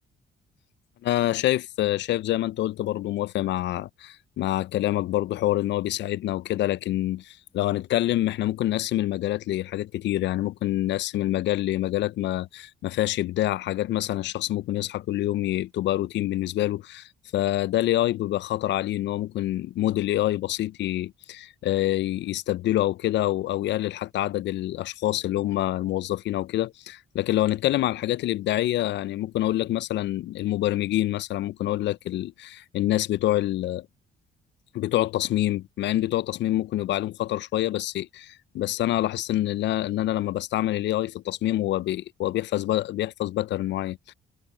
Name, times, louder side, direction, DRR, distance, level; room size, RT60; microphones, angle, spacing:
voice 1, 1.0-33.9 34.7-44.1, left 14 dB, 65° left, 0.4 m, -26 dB
cardioid pair, 90°, 20 cm